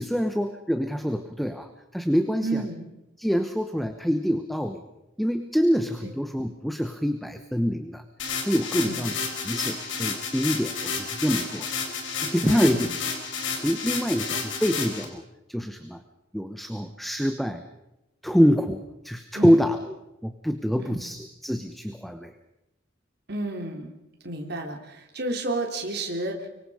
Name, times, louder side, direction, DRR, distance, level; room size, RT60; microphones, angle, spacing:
voice 1, 0.0-2.6 3.2-4.8 5.2-8.0 8.4-9.1 9.4-11.7 12.2-12.9 13.6-15.2 15.5-16.0 16.3-17.6 18.2-19.8 20.2-22.3, equal, ahead, 7 dB, 1.0 m, -25 dB
voice 2, 2.4-2.8 6.0-6.1 8.7-9.0 12.4-12.9 19.3-19.6 20.8-21.0 23.3-23.9 24.2-26.5, right 2 dB, 55° right, 3 dB, 3.5 m, -31 dB
sound 1, 8.2-15.0, left 5 dB, 70° left, 4.3 m, -31 dB
25.0 x 24.0 x 5.0 m, 0.92 s
head